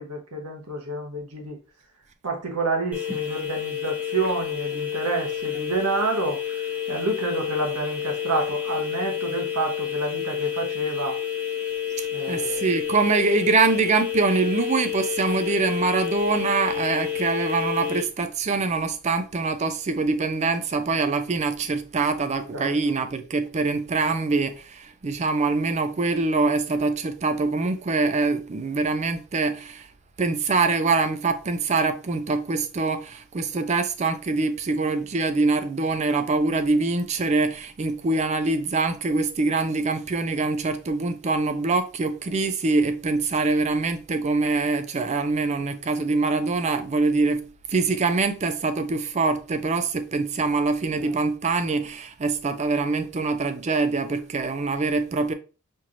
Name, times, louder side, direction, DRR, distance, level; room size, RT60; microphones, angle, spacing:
voice 1, 0.0-1.6 2.2-11.2 12.1-12.7 22.5-22.7 50.9-51.1, right 3 dB, 90° right, 1.1 m, -29 dB
sound 1, 2.9-18.0, left 9 dB, 5° right, 0.8 m, -29 dB
voice 2, 12.0-29.9 30.2-55.3, right 3 dB, 30° right, 0.4 m, -24 dB
4.3 x 3.0 x 2.5 m
head